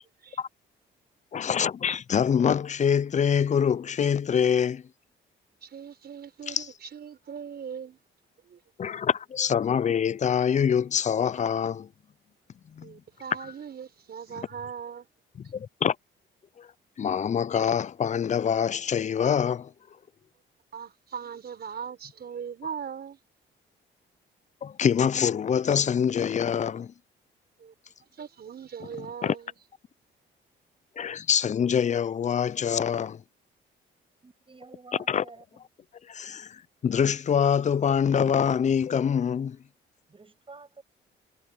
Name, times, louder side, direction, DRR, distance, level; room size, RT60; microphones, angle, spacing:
voice 1, 1.3-4.8 6.5-6.7 8.8-11.9 12.8-12.9 15.5-16.0 16.6-16.7 17.0-19.7 24.6-26.9 29.2-29.4 31.0-33.2 35.1-35.2 36.1-39.6, left 7 dB, 35° left, 0.5 m, -25 dB
voice 2, 5.6-8.0 8.4-8.6 12.8-15.1 20.7-23.2 27.6-27.7 28.1-29.5, right 7 dB, 55° right, 5.4 m, -39 dB
voice 3, 34.2-35.6 40.1-40.8, right 4 dB, 25° right, 7.1 m, -50 dB
cardioid pair, 90°, 20 cm